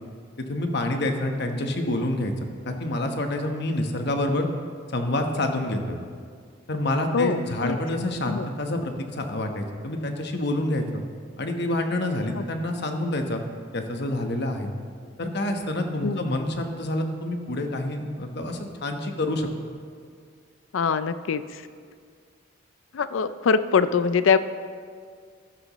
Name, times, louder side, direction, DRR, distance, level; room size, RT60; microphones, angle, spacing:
voice 1, 0.5-2.3 2.6-4.5 4.9-6.0 6.7-11.0 11.4-13.4 13.7-14.7 15.2-19.5, left 1 dB, 60° left, 4 dB, 1.1 m, -27 dB
voice 2, 7.1-7.8 8.3-8.5 12.4-12.5 16.0-16.2 20.7-21.6 22.9-24.4, left 5 dB, 85° left, 13 dB, 0.4 m, -23 dB
14.0 x 12.0 x 3.1 m, 2.1 s
head